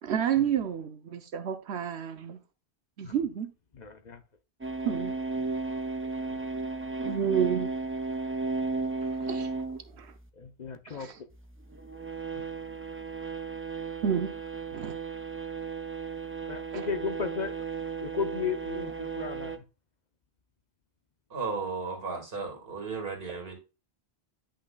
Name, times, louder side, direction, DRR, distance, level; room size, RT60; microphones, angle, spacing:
voice 1, 0.0-2.4 3.0-3.5 4.8-5.1 7.0-7.7 9.2-9.5 9.9-10.1 10.9-11.1 14.0-14.4 14.7-15.0, right 9 dB, 80° right, 1.0 m, -30 dB
voice 2, 3.7-4.2 10.4-11.1 12.3-12.4 16.5-17.5 18.0-19.6, left 5 dB, 45° left, 0.8 m, -35 dB
sound 1, 4.6-9.8 11.7-19.6, right 4 dB, 15° right, 0.5 m, -34 dB
voice 3, 21.3-23.6, right 4 dB, 60° right, 2.4 m, -34 dB
10.0 x 5.7 x 2.3 m
omnidirectional pair, 1.1 m